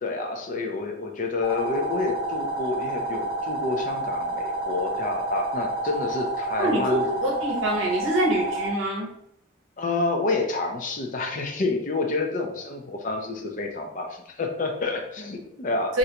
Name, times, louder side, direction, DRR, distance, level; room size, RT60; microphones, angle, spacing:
voice 1, 0.0-7.0 9.8-16.0, left 3 dB, 40° left, 3 dB, 0.5 m, -28 dB
sound 1, 1.4-8.7, right 2 dB, 30° right, 1.5 m, -29 dB
voice 2, 6.6-9.1 15.9-16.0, right 1 dB, 75° right, -1 dB, 0.7 m, -25 dB
3.2 x 2.5 x 2.8 m, 0.74 s
head